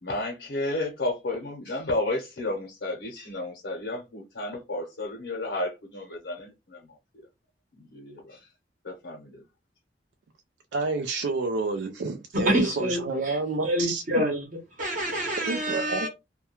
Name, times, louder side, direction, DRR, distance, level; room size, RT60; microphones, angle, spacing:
voice 1, 0.0-7.3 7.7-8.5 8.8-9.4, left 2 dB, 80° left, 0.7 m, -32 dB
voice 2, 10.7-14.0 15.5-16.1, right 3 dB, 80° right, 0.4 m, -29 dB
voice 3, 12.4-14.5 14.8-16.1, equal, 50° right, 0.8 m, -27 dB
2.3 x 2.2 x 2.8 m
head